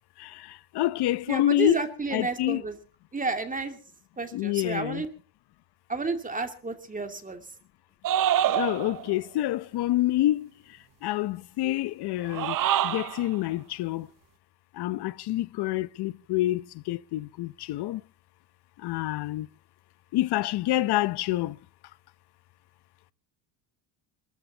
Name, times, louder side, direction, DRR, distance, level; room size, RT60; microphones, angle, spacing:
voice 1, 0.2-1.8 2.1-2.6 4.3-5.0 8.5-12.6 12.8-14.1 14.7-18.0 18.8-19.5 20.1-21.6, left 15 dB, 50° left, 0.8 m, -27 dB
voice 2, 1.3-2.8 3.1-3.8 4.2-5.1 5.9-7.5, right 3 dB, 15° right, 2.6 m, -31 dB
sound 1, 8.0-9.1 12.2-13.3, right 11 dB, 40° right, 0.9 m, -26 dB
27.5 x 14.0 x 2.9 m
cardioid pair, 125°, 50 cm